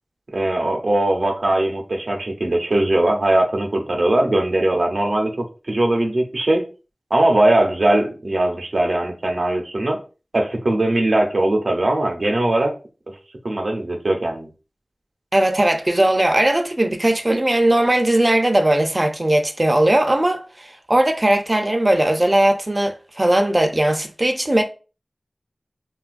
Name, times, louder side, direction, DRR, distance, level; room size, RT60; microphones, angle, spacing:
voice 1, 0.3-6.7 7.1-10.0 10.3-12.7 13.4-14.5, right 1 dB, 70° right, 0.7 m, -20 dB
voice 2, 15.3-24.6, right 1 dB, 30° right, 0.5 m, -18 dB
3.7 x 2.3 x 2.5 m
wide cardioid pair, 50°, 0 cm